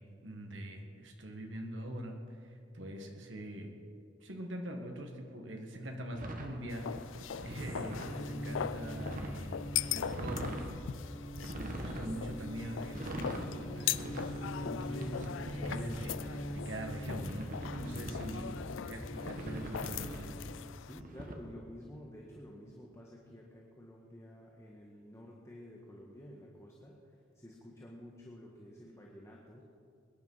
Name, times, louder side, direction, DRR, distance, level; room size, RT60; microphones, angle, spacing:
voice 1, 0.0-3.7 4.2-6.9 7.4-10.5 11.5-18.5 18.8-20.3, right 1 dB, 75° right, 3 dB, 1.9 m, -43 dB
sound 1, 6.1-8.2 8.7-9.4 10.0-10.7 11.4-12.1 12.8-13.5 13.9-16.3 17.1-18.5 19.1-20.3 21.0-21.3, right 1 dB, 45° right, 1.7 m, -43 dB
sound 2, 6.7-21.0, left 9 dB, 85° left, 0.4 m, -41 dB
sound 3, 7.9-20.4, equal, 15° right, 5.0 m, -43 dB
voice 2, 18.0-18.6 20.8-29.6, equal, 15° left, -2 dB, 1.6 m, -51 dB
22.0 x 10.5 x 5.7 m, 2.5 s
head